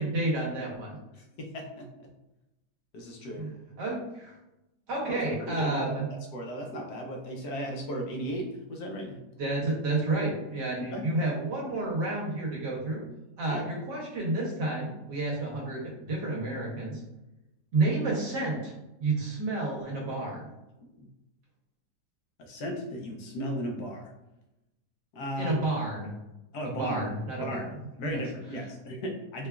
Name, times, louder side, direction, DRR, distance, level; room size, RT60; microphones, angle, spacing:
voice 1, 0.0-1.0 3.4-3.5 3.8-4.3 4.9-6.1 9.4-13.0 13.4-17.0 17.7-18.7 19.0-20.5 25.4-26.1 26.6-27.7 28.0-28.2, right 2 dB, 80° right, -3 dB, 1.5 m, -30 dB
voice 2, 1.1-2.1 2.9-3.5 5.1-6.0 6.3-9.2 10.9-11.1 13.5-13.6 21.0-21.1 22.4-24.1 25.1-25.6 26.5-27.1 27.4-29.5, equal, 70° left, 1 dB, 1.2 m, -36 dB
4.8 x 2.3 x 2.3 m, 0.92 s
omnidirectional pair, 1.8 m